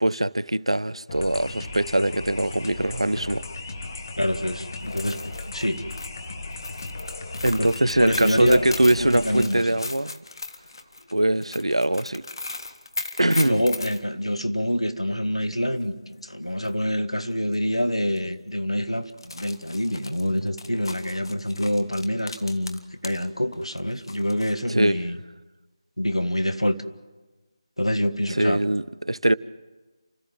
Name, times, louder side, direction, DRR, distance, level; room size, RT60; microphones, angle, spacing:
voice 1, 0.0-3.4 7.4-10.2 11.1-12.2 13.2-13.6 24.7-25.0 28.3-29.3, right 1 dB, 75° right, 0.8 m, -22 dB
sound 1, 1.1-9.4, left 2 dB, 35° left, 2.0 m, -36 dB
voice 2, 4.2-5.2 5.5-5.8 7.6-7.7 8.0-8.7 9.0-9.8 13.4-25.2 26.0-26.8 27.8-28.6, equal, 85° left, 1.6 m, -26 dB
sound 2, 4.8-14.0 16.2-16.3 16.6-16.7 17.5-17.7 18.1-18.2 19.1-23.3 23.5-24.6, left 3 dB, 55° left, 1.7 m, -37 dB
30.0 x 14.0 x 7.4 m
figure-of-eight pair, 160°, 3 cm